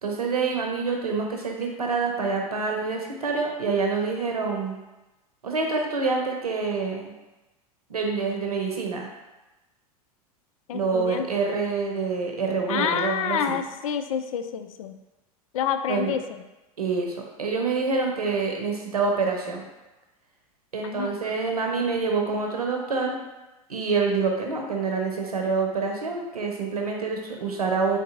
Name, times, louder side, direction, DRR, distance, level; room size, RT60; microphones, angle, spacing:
voice 1, 0.0-4.8 5.4-7.1 7.9-9.1 10.7-13.6 15.9-16.2 16.8-19.6 20.7-23.2 23.7-28.0, right 4 dB, 80° right, 2 dB, 0.7 m, -26 dB
voice 2, 10.7-11.3 12.7-14.9 15.5-16.4 20.8-21.1, left 8 dB, 65° left, 9 dB, 0.4 m, -28 dB
3.9 x 3.8 x 2.5 m, 1.0 s
figure-of-eight pair, 85°, 19 cm